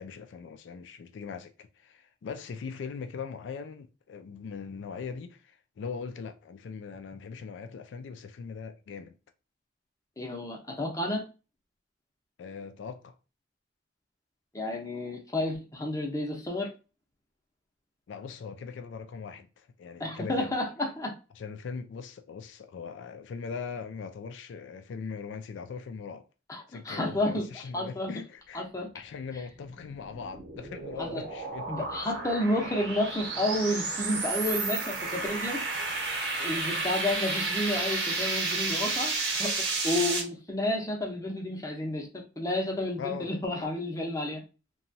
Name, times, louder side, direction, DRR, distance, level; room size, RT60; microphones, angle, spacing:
voice 1, 0.0-9.1 12.4-13.1 18.1-20.5 21.4-26.2 26.7-28.7 28.9-31.9 43.0-43.4, left 5 dB, 80° left, 0.3 m, -40 dB
voice 2, 10.2-11.2 14.5-16.7 20.0-21.1 26.5-27.5 27.7-28.1 28.5-28.9 31.0-31.2 31.7-35.6 36.4-39.1 39.4-39.5 39.8-44.4, left 1 dB, 20° left, 0.6 m, -31 dB
sound 1, 29.6-40.2, right 3 dB, 65° right, 1.0 m, -32 dB
2.9 x 2.2 x 2.6 m
head